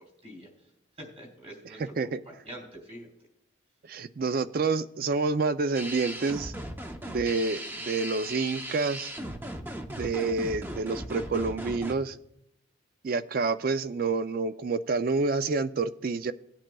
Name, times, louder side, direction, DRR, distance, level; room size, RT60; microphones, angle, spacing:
voice 1, 0.0-3.1, right 1 dB, 30° right, -1 dB, 3.3 m, -46 dB
voice 2, 3.8-6.5 7.1-9.1 10.0-12.2 13.0-16.3, right 4 dB, 45° right, 13 dB, 0.4 m, -28 dB
sound 1, 5.7-11.9, right 1 dB, 10° right, 0.7 m, -37 dB
18.5 x 8.9 x 2.3 m, 0.77 s
head